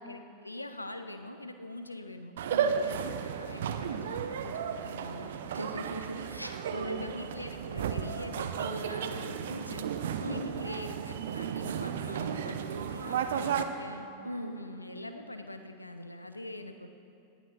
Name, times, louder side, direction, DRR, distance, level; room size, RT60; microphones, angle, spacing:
voice 1, 0.0-2.4 2.7-5.3 6.8-9.9 10.3-14.1 14.5-16.9, left 1 dB, 85° left, 8 dB, 0.7 m, -43 dB
sound 1, 2.4-13.6, right 7 dB, 60° right, 0.6 m, -34 dB
voice 2, 5.5-7.1 10.2-10.4 14.2-14.6, right 1 dB, 90° right, 5 dB, 0.9 m, -38 dB
18.5 x 9.1 x 4.2 m, 2.6 s
figure-of-eight pair, 90°, 0 cm